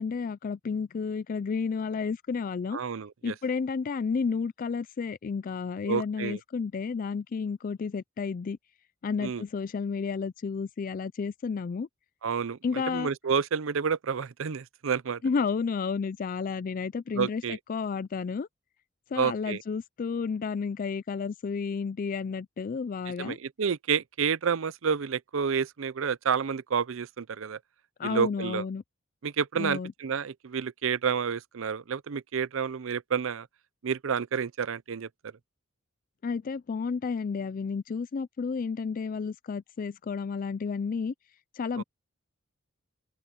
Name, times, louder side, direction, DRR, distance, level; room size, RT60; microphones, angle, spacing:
voice 1, 0.0-2.8 3.2-8.6 9.0-11.9 12.6-13.1 15.2-18.5 19.1-23.4 28.0-28.8 29.6-29.9 36.2-41.1 41.5-41.8, left 5 dB, 40° left, 0.3 m, -31 dB
voice 2, 2.7-3.3 5.8-6.4 9.2-9.4 12.2-15.2 17.1-17.6 19.2-19.6 23.1-27.6 28.0-28.6 29.2-33.5 33.8-35.1 41.8-41.9, right 6 dB, 65° right, 0.5 m, -29 dB
open air
head